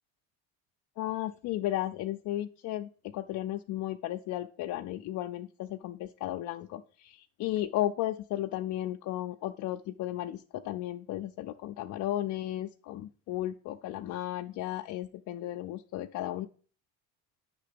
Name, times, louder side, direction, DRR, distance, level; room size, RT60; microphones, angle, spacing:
voice 1, 1.0-16.5, left 14 dB, 55° left, 4 dB, 0.5 m, -34 dB
9.6 x 3.6 x 6.8 m, 0.41 s
cardioid pair, 130°, 36 cm